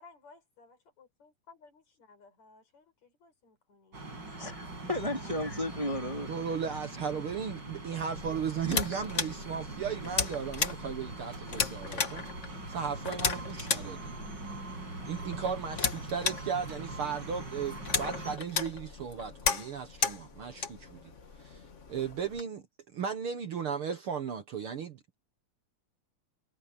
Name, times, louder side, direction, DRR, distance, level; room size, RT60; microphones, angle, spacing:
voice 1, 0.0-4.0 4.9-5.2, left 4 dB, 65° left, 6.5 m, -57 dB
sound 1, 3.9-18.4, right 2 dB, 35° right, 6.9 m, -42 dB
voice 2, 4.3-6.3, left 1 dB, 10° right, 2.4 m, -34 dB
voice 3, 6.3-14.1 15.1-21.0 21.4-21.6 21.9-22.6 22.9-25.1, right 7 dB, 55° right, 1.8 m, -36 dB
sound 2, 8.2-22.4, left 5 dB, 40° left, 1.0 m, -36 dB
omnidirectional pair, 3.4 m